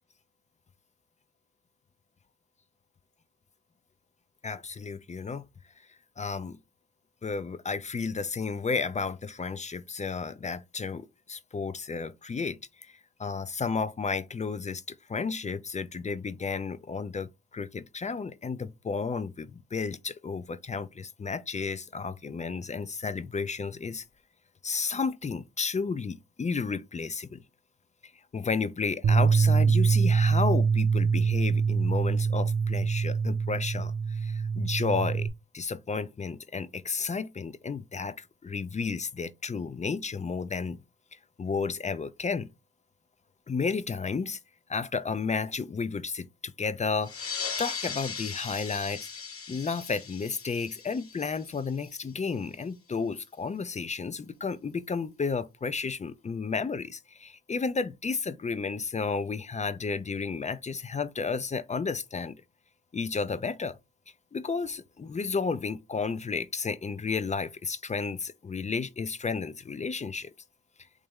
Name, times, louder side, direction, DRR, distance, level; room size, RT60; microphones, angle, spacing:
voice 1, 4.4-5.4 6.2-6.6 7.2-24.0 24.6-27.4 28.3-35.3 35.5-40.8 41.1-42.5 43.5-44.4 44.7-49.1 49.5-62.4 62.9-63.8 64.3-70.3, left 5 dB, 25° left, 0.4 m, -32 dB
Bass guitar, 29.0-35.3, right 5 dB, 50° right, 0.6 m, -24 dB
sound 1, 47.0-52.1, left 5 dB, 45° left, 1.1 m, -38 dB
3.3 x 2.9 x 3.5 m
cardioid pair, 75°, 30 cm